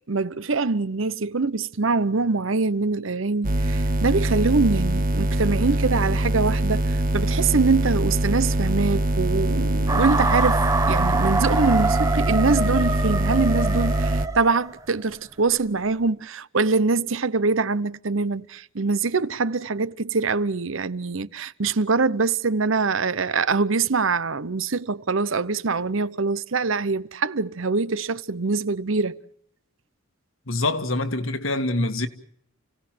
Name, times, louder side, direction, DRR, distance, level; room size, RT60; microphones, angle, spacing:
voice 1, 0.1-29.2, right 4 dB, 70° right, 0.9 m, -24 dB
sound 1, 3.4-14.3, right 1 dB, 45° right, 1.3 m, -23 dB
sound 2, 9.9-14.9, right 3 dB, 15° right, 1.1 m, -25 dB
voice 2, 30.5-32.1, left 2 dB, 75° left, 2.0 m, -25 dB
29.5 x 17.5 x 7.7 m
head